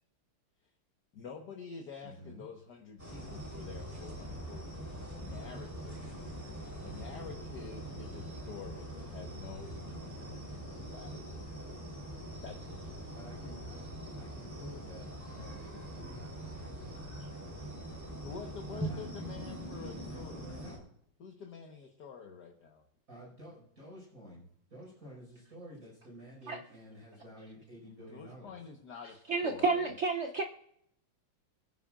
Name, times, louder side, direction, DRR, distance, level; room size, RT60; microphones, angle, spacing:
voice 1, 1.1-4.7 5.2-6.3 6.6-10.5 10.8-11.6 12.0-12.1 12.4-12.9 17.2-17.3 18.2-20.5 21.2-22.8 27.9-29.9, left 5 dB, 55° left, 2 dB, 1.7 m, -48 dB
voice 2, 2.0-2.4 13.1-13.8 14.2-17.1 18.7-20.9 23.1-28.6, equal, 40° right, -4 dB, 5.8 m, -51 dB
sound 1, 3.0-20.8, right 1 dB, 5° right, 3.7 m, -43 dB
voice 3, 29.3-30.4, right 4 dB, 85° right, 4 dB, 0.6 m, -30 dB
25.0 x 10.0 x 2.5 m, 0.71 s
omnidirectional pair, 2.3 m